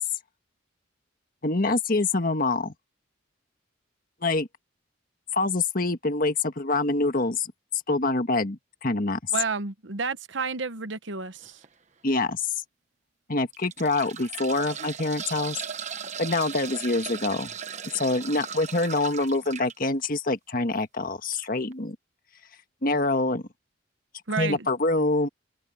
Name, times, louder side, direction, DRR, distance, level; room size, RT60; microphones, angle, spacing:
voice 1, 1.4-2.7 4.2-4.5 5.3-7.5 7.9-9.3 12.0-12.5 13.3-15.6 16.2-17.5 17.9-21.9 22.8-23.4 24.4-25.3, left 2 dB, 45° left, 1.6 m, -25 dB
voice 2, 9.3-11.6 24.3-24.7, right 5 dB, 65° right, 1.0 m, -31 dB
sound 1, 11.4-11.7 12.3-12.4 13.3-19.7 21.3-21.5 21.7-21.8, right 7 dB, 35° right, 1.1 m, -37 dB
open air
head